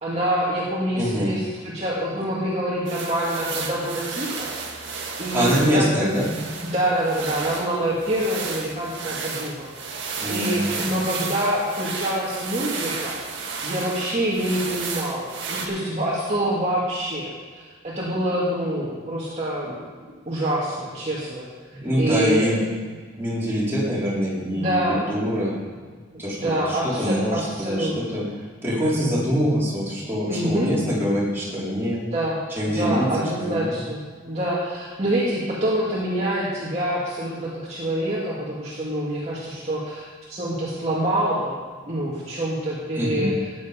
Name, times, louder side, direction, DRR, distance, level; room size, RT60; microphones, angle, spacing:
voice 1, 0.0-4.9 5.2-6.1 6.7-13.2 13.6-21.5 22.0-22.5 24.5-25.0 26.1-28.2 30.3-30.7 32.1-32.4 32.8-41.6 41.9-43.3, right 1 dB, 30° right, -7 dB, 2.2 m, -26 dB
voice 2, 1.0-1.3 5.3-6.3 10.2-10.8 21.8-22.6 23.1-25.5 26.2-28.2 28.6-32.0 32.6-33.8 42.9-43.3, equal, 10° right, -9 dB, 3.9 m, -24 dB
sound 1, 2.8-15.7, right 4 dB, 60° right, 1.9 m, -33 dB
14.0 x 9.7 x 5.2 m, 1.5 s
head